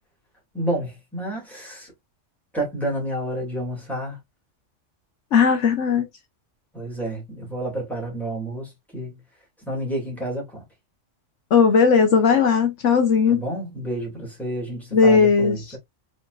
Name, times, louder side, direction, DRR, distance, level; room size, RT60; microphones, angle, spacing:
voice 1, 0.5-1.9 2.5-4.2 6.7-9.2 9.7-10.6 13.3-15.8, right 1 dB, ahead, 2.4 m, -30 dB
voice 2, 5.3-6.1 11.5-13.4 14.9-15.8, left 5 dB, 70° left, 1.2 m, -17 dB
4.2 x 4.0 x 2.4 m
omnidirectional pair, 1.3 m